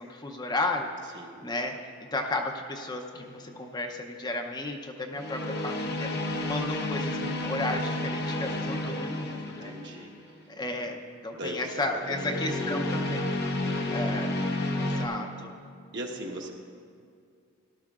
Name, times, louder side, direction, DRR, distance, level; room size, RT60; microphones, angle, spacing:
voice 1, 0.0-1.7 2.1-9.7 10.5-13.3 13.9-14.3 14.8-15.5, left 2 dB, 20° left, 3 dB, 0.6 m, -33 dB
voice 2, 1.1-1.5 8.8-10.1 11.3-13.1 13.8-14.3 15.0-15.2 15.9-16.5, right 1 dB, 55° right, 1 dB, 1.2 m, -41 dB
sound 1, 3.2-3.5 5.1-10.2 12.0-15.1, left 1 dB, 50° left, 0.9 m, -31 dB
17.5 x 12.0 x 2.4 m, 2.2 s
head